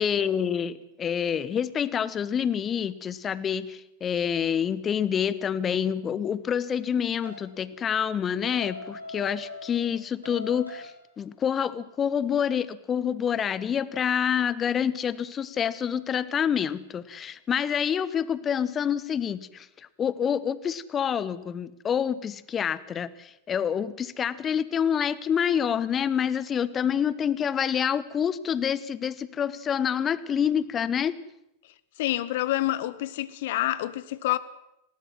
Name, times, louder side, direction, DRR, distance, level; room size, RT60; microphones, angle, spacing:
voice 1, 0.0-10.9 11.2-19.7 20.0-31.1, left 8 dB, 25° left, 0.9 m, -27 dB
sound 1, 7.2-7.6 8.5-9.9 10.2-11.1, left 2 dB, 90° right, 5.3 m, -41 dB
voice 2, 32.0-34.4, left 15 dB, 55° left, 0.9 m, -27 dB
19.0 x 18.0 x 7.6 m
figure-of-eight pair, 90°, 0 cm